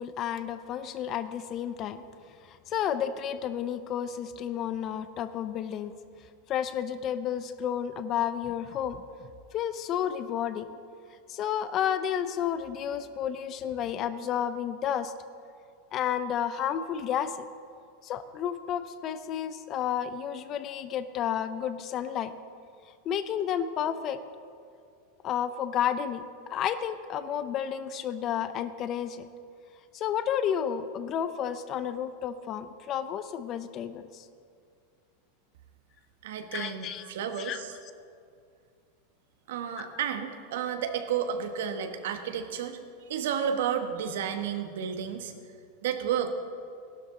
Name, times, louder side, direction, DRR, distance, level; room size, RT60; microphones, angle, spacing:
voice 1, 0.0-2.0 2.4-5.9 6.5-9.0 9.5-10.7 11.3-15.1 15.9-17.5 18.0-22.3 23.0-24.2 25.2-26.2 26.5-29.3 29.9-34.3 36.5-37.1 37.4-37.6 39.8-40.0, left 9 dB, 30° left, 12 dB, 0.5 m, -31 dB
voice 2, 36.2-37.7 39.5-42.8 43.1-45.3 45.8-46.3, right 8 dB, 75° right, 7 dB, 1.2 m, -31 dB
16.0 x 12.0 x 3.8 m, 2.4 s
supercardioid pair, 160°, 0 cm